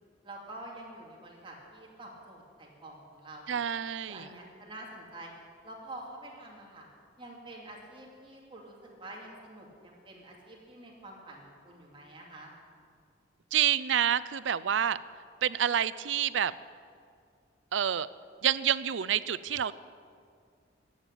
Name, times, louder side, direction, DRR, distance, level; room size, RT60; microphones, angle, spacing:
voice 1, 0.2-3.6 4.0-5.3 5.6-6.9 7.2-12.5, right 1 dB, 30° right, -2 dB, 2.6 m, -47 dB
voice 2, 3.5-4.2 13.5-15.0 15.4-16.5 17.7-18.1 18.4-19.7, right 9 dB, 85° right, 16 dB, 0.5 m, -28 dB
14.5 x 8.7 x 10.0 m, 2.2 s
head